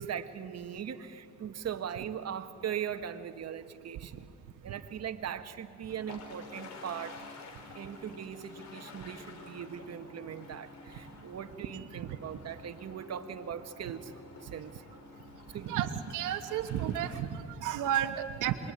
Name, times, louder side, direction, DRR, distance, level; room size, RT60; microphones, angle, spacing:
voice 1, 0.0-4.3 4.6-7.2 7.7-14.1 14.4-14.8 15.5-15.8, right 8 dB, 60° right, 8 dB, 1.6 m, -40 dB
sound 1, 5.9-17.2, left 4 dB, 65° left, 4.6 m, -50 dB
voice 2, 15.7-17.3 17.6-18.6, right 11 dB, 85° right, 7 dB, 1.2 m, -32 dB
26.0 x 22.5 x 9.8 m, 2.5 s
cardioid pair, 90°, 30 cm